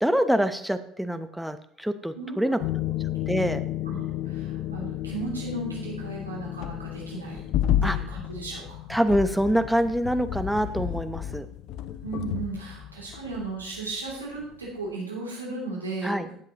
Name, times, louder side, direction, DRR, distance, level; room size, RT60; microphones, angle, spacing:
voice 1, 0.0-2.6 3.3-3.6 7.8-8.0 8.9-11.5 16.0-16.3, equal, ahead, 10 dB, 0.9 m, -25 dB
voice 2, 2.1-2.8 3.8-7.4 7.8-8.8 12.0-16.3, right 3 dB, 90° right, -4 dB, 2.8 m, -35 dB
sound 1, 2.6-14.1 14.4-14.7, left 12 dB, 55° left, 0.8 m, -31 dB
16.5 x 7.6 x 3.0 m, 0.64 s
figure-of-eight pair, 65°, 0 cm